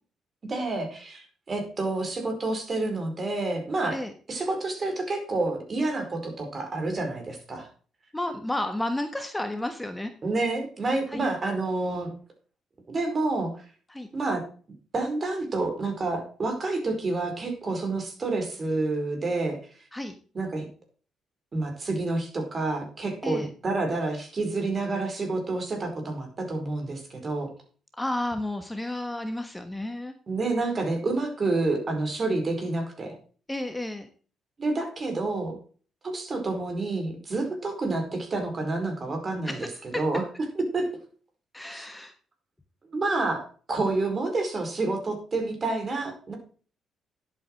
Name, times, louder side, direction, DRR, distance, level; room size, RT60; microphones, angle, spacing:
voice 1, 0.4-4.0 4.3-7.7 10.2-12.1 12.9-13.5 14.1-14.4 14.9-19.6 20.3-20.7 21.5-27.5 30.3-33.2 34.6-35.6 36.0-39.6 39.9-40.2 40.7-40.9 41.7-41.9 42.8-46.3, right 2 dB, 40° right, 4 dB, 4.7 m, -29 dB
voice 2, 8.1-10.1 11.1-11.2 13.9-14.1 19.9-20.1 23.2-23.5 28.0-30.1 33.5-34.1 39.5-40.0 41.5-42.1, left 1 dB, 10° left, 7 dB, 1.4 m, -32 dB
11.0 x 8.3 x 4.7 m, 0.41 s
cardioid pair, 90°, 0 cm